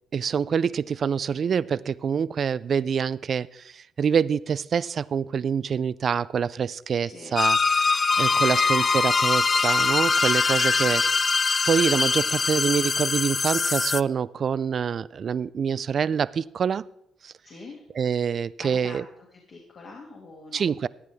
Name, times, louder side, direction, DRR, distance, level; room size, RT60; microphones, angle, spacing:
voice 1, 0.1-11.2 11.7-16.9 17.2-17.3 18.0-19.0 20.5-20.9, right 7 dB, 50° right, 20 dB, 0.3 m, -26 dB
voice 2, 7.0-7.4 8.1-8.6 10.8-11.1 17.4-17.8 18.6-19.1 19.3-20.7, left 3 dB, 55° left, -2 dB, 2.2 m, -44 dB
sound 1, 7.4-14.0, left 4 dB, 35° left, 0.3 m, -22 dB
14.5 x 9.3 x 3.4 m, 0.78 s
cardioid pair, 90°, 0 cm